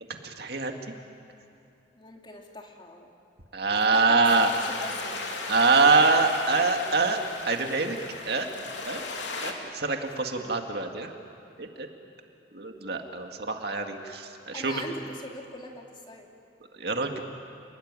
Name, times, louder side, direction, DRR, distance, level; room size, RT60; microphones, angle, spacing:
voice 1, 0.2-0.8 3.5-4.5 5.5-7.2 7.5-8.0 8.3-8.5 8.8-9.0 9.4-11.1 11.6-11.9 12.5-14.8 16.8-17.2, right 3 dB, 60° right, 4 dB, 2.1 m, -24 dB
voice 2, 1.9-3.1 3.7-5.2 14.5-16.3, left 2 dB, 25° left, 1 dB, 2.8 m, -41 dB
sound 1, 4.3-9.5, left 3 dB, 75° left, 3.0 m, -36 dB
29.5 x 21.0 x 9.8 m, 2.6 s
head